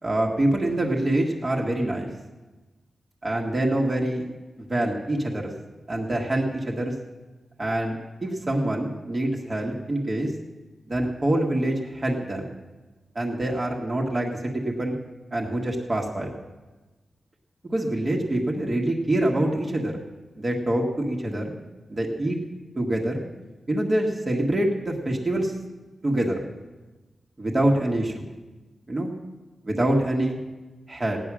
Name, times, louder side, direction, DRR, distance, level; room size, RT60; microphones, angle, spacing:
voice 1, 0.0-2.1 3.2-4.3 4.7-5.5 5.9-6.9 7.6-10.3 10.9-12.5 13.2-15.0 15.3-16.3 17.6-20.0 20.4-21.6 21.9-22.4 22.8-23.2 23.7-25.5 26.0-26.4 27.4-28.2 28.9-29.1 29.6-30.4 30.9-31.2, right 1 dB, 30° right, -1 dB, 1.8 m, -25 dB
16.5 x 10.0 x 6.2 m, 1.2 s
wide cardioid pair, 125°, 0 cm